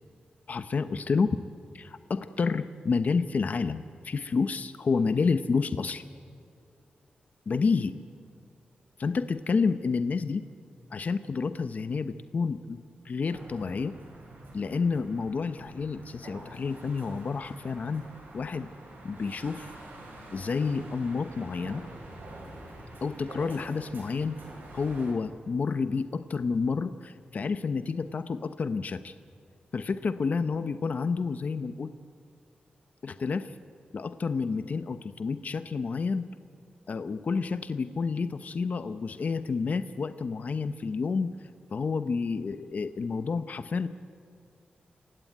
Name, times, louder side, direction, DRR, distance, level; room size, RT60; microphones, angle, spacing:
voice 1, 0.5-1.4 1.7-6.0 7.5-7.9 9.0-10.4 10.9-12.8 13.0-13.9 14.5-18.0 18.3-18.7 19.0-19.7 20.3-21.8 23.0-24.4 24.7-29.1 29.7-31.9 33.0-33.5 33.9-36.3 36.9-41.3 41.7-43.9, left 4 dB, 55° left, 10 dB, 0.8 m, -29 dB
sound 1, 13.3-25.1, right 2 dB, 90° right, 7.9 m, -46 dB
29.0 x 17.0 x 9.2 m, 2.3 s
wide cardioid pair, 105°, 3 cm